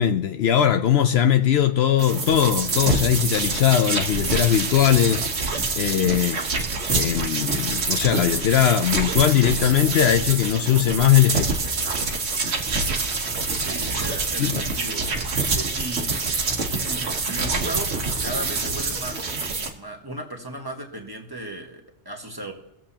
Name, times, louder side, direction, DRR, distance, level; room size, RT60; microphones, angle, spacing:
voice 1, 0.0-5.3 5.7-6.4 6.9-11.5 14.4-14.6, left 10 dB, 70° left, 9 dB, 0.8 m, -20 dB
sound 1, 2.0-19.7, right 3 dB, 70° right, 1.5 m, -26 dB
voice 2, 13.6-16.1 16.8-19.3 19.7-22.5, right 1 dB, 20° right, 2 dB, 1.5 m, -36 dB
20.5 x 7.5 x 2.9 m, 0.83 s
omnidirectional pair, 1.2 m